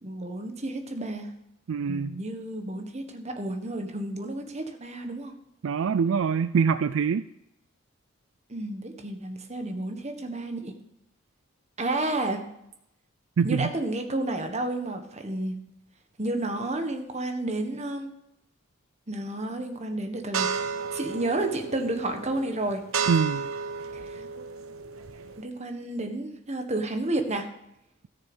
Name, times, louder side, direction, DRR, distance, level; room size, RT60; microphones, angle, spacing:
voice 1, 0.0-1.3 1.9-5.3 8.5-10.7 11.8-12.4 13.4-15.5 16.2-18.1 19.1-20.5 20.9-22.8 23.9-24.2 25.4-27.5, right 2 dB, 35° right, 5 dB, 1.5 m, -31 dB
voice 2, 1.7-2.1 5.6-7.3 13.4-13.7 23.1-23.4, right 6 dB, 70° right, 13 dB, 0.4 m, -24 dB
sound 1, 20.3-25.4, right 5 dB, 90° right, 0.9 m, -33 dB
13.5 x 6.7 x 6.3 m, 0.81 s
head